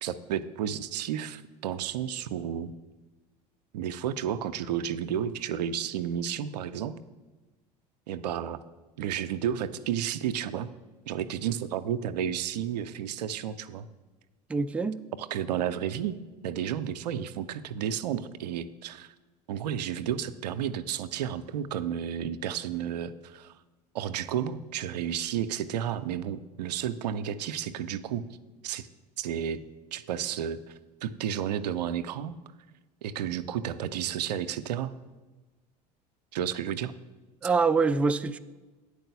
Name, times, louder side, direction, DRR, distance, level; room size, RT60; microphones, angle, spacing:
voice 1, 0.0-2.7 3.7-7.0 8.1-8.6 9.0-10.7 11.1-13.9 15.2-16.2 16.4-19.1 19.5-23.6 23.9-28.3 28.6-28.9 29.2-29.6 29.9-32.4 33.0-34.9 36.3-36.9, right 9 dB, 75° right, 12 dB, 0.5 m, -32 dB
voice 2, 14.5-15.0 37.4-38.4, right 4 dB, 5° right, 9 dB, 0.3 m, -25 dB
9.0 x 4.7 x 6.8 m, 1.2 s
hypercardioid pair, 70°, 21 cm